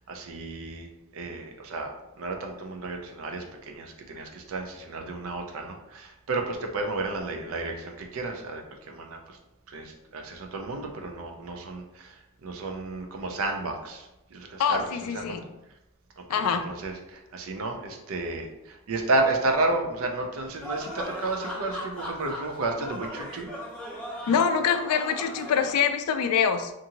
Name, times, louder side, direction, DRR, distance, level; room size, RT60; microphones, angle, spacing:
voice 1, 0.1-0.9 1.1-9.2 9.7-11.8 12.4-14.0 14.3-14.8 15.1-15.4 16.6-16.9 17.3-18.5 18.9-23.5, right 2 dB, 70° right, 3 dB, 0.5 m, -31 dB
voice 2, 14.6-15.4 16.3-16.6 24.3-26.7, left 6 dB, 85° left, 8 dB, 0.3 m, -24 dB
sound 1, 20.6-25.7, equal, 5° left, 0.6 m, -38 dB
2.6 x 2.5 x 2.8 m, 0.92 s
head